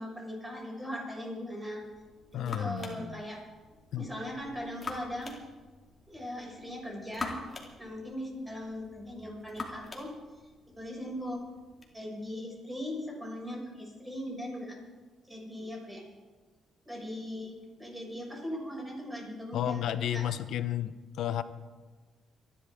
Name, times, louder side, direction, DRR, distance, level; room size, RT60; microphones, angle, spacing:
voice 1, 0.0-1.8 2.3-3.4 4.0-5.3 6.1-7.4 7.8-10.1 10.8-11.4 11.9-14.7 15.3-16.0 16.8-19.9 20.1-20.2, equal, 10° right, -3 dB, 6.7 m, -39 dB
sound 1, 1.8-11.9, left 3 dB, 30° left, 2.6 m, -45 dB
voice 2, 2.3-3.2 3.9-4.1 19.5-21.4, left 10 dB, 75° left, 12 dB, 0.9 m, -32 dB
26.0 x 11.5 x 3.8 m, 1.3 s
cardioid pair, 90°, 0 cm